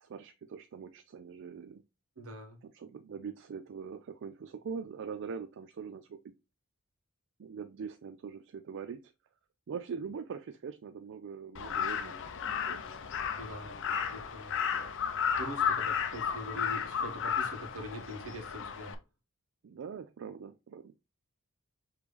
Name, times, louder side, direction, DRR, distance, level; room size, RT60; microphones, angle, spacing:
voice 1, 0.0-1.8 2.6-6.3 7.4-9.1 9.7-12.9 14.6-15.0 19.6-20.9, right 6 dB, 60° right, 0.4 m, -43 dB
voice 2, 2.2-2.6 13.4-13.8 14.1-14.6 15.4-18.9, equal, 80° right, 1.4 m, -43 dB
Crow, 11.6-18.9, left 7 dB, 60° left, 0.6 m, -33 dB
5.1 x 3.2 x 3.2 m
head